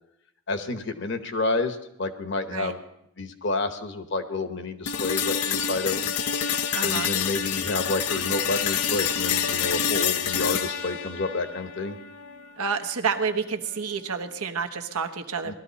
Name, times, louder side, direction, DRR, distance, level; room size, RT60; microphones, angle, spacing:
voice 1, 0.5-2.8 3.2-6.1 6.8-12.0 15.4-15.5, left 3 dB, 55° left, 8 dB, 1.0 m, -29 dB
sound 1, 4.9-12.9, left 7 dB, 85° left, 0.7 m, -27 dB
voice 2, 6.7-7.1 12.6-15.5, right 5 dB, 85° right, 6 dB, 1.1 m, -29 dB
18.5 x 13.0 x 4.1 m, 0.77 s
head